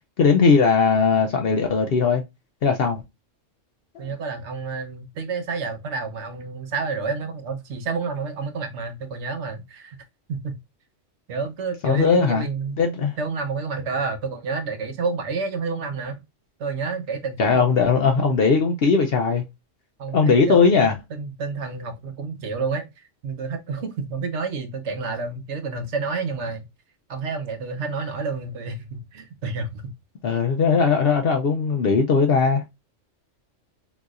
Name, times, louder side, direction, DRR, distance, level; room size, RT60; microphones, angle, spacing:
voice 1, 0.2-2.2 2.6-3.0 4.0-4.1 11.8-12.5 12.8-13.1 17.4-19.4 20.1-21.0 30.2-32.6, left 5 dB, 60° left, 0.7 m, -19 dB
voice 2, 4.0-10.0 10.3-10.5 11.3-12.8 13.2-16.2 16.6-18.3 20.0-26.7 27.1-29.9, right 4 dB, 65° right, 1.0 m, -29 dB
4.0 x 2.7 x 2.3 m
omnidirectional pair, 1.3 m